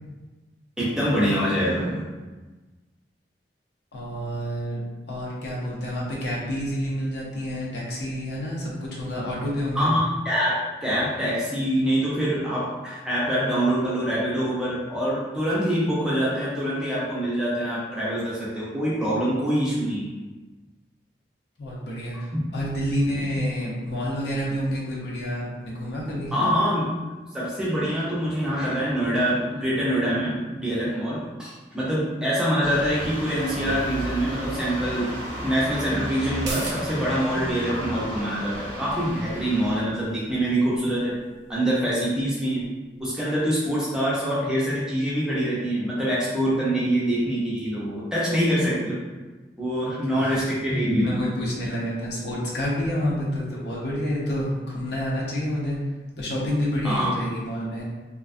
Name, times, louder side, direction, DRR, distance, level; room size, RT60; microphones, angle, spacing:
voice 1, 0.8-2.0 9.7-10.5 10.8-20.1 26.3-26.9 27.3-35.1 35.4-41.2 41.5-42.7 43.0-49.0 49.6-51.0 56.8-57.1, equal, 5° right, -8 dB, 0.5 m, -25 dB
voice 2, 3.9-4.8 5.1-9.9 21.6-26.3 50.1-55.8 56.2-57.8, equal, 70° left, -5 dB, 0.7 m, -29 dB
sound 1, 32.6-39.8, equal, 35° left, 0.7 m, -33 dB
sound 2, 36.3-43.4 43.7-43.8, right 3 dB, 80° right, 0.5 m, -42 dB
2.4 x 2.2 x 2.4 m, 1.2 s
head